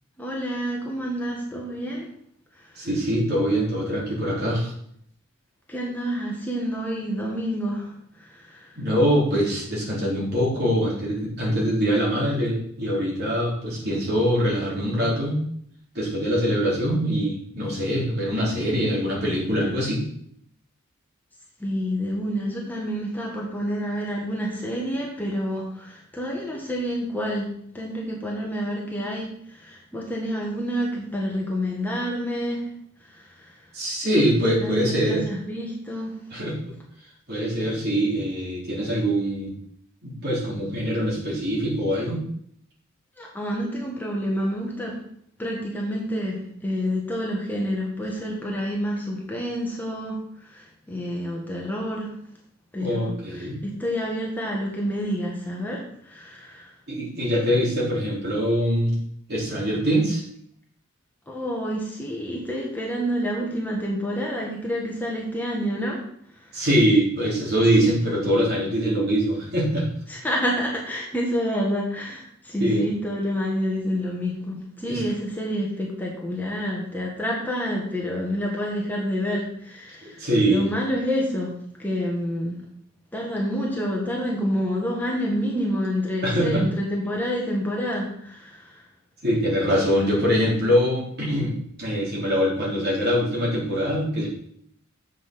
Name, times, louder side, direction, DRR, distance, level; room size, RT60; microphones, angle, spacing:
voice 1, 0.2-2.1 2.5-2.9 5.7-8.7 21.6-27.5 27.7-32.7 33.1-33.6 34.6-36.2 43.2-45.0 45.4-52.1 52.7-56.7 61.3-66.0 66.3-66.7 70.1-81.5 81.8-82.6 83.1-88.8, equal, 10° left, -3 dB, 1.6 m, -28 dB
voice 2, 2.8-4.7 8.8-15.4 15.9-20.0 33.7-35.2 36.3-36.8 37.3-39.5 40.0-42.2 48.2-48.3 52.8-53.6 56.9-59.0 59.3-60.2 66.5-69.8 72.6-72.8 74.9-75.0 80.0-80.6 86.2-86.6 89.2-91.5 91.8-94.3, equal, 50° right, -5 dB, 3.8 m, -23 dB
7.6 x 6.0 x 6.0 m, 0.67 s
head